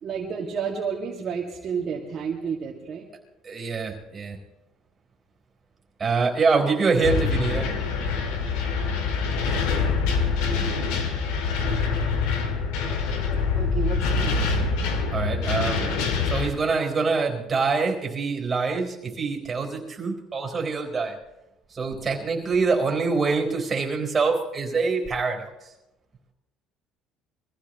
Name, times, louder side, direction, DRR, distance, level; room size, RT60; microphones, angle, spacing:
voice 1, 0.0-3.1 13.6-14.4, right 6 dB, 45° right, -3 dB, 2.0 m, -31 dB
voice 2, 3.4-4.4 6.0-7.8 15.1-15.9 16.2-21.2 21.7-25.5, right 4 dB, 25° right, 1 dB, 4.2 m, -25 dB
sound 1, 7.0-16.5, left 5 dB, 90° left, 2.0 m, -25 dB
23.5 x 15.0 x 3.1 m, 0.92 s
cardioid pair, 125°, 0 cm